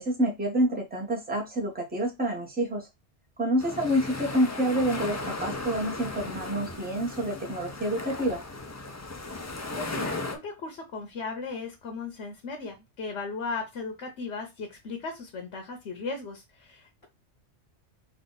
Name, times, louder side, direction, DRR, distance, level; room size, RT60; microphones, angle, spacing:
voice 1, 0.0-2.9 3.4-8.4, right 1 dB, 10° right, 0 dB, 1.0 m, -28 dB
sound 1, 3.6-10.4, left 2 dB, 25° left, 0.3 m, -36 dB
voice 2, 9.7-17.1, left 4 dB, 75° left, 4 dB, 1.2 m, -37 dB
3.7 x 2.6 x 3.9 m, 0.22 s
omnidirectional pair, 1.2 m